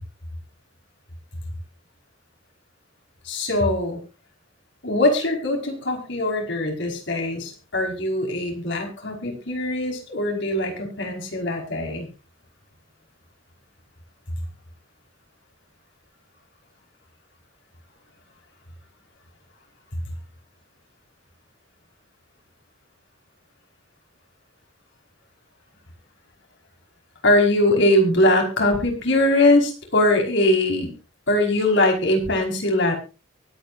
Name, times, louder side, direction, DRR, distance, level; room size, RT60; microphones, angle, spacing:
voice 1, 3.2-4.0 4.8-12.1 27.2-30.9 31.3-32.9, left 1 dB, 60° left, 2 dB, 5.4 m, -21 dB
23.5 x 9.3 x 2.7 m, 0.32 s
head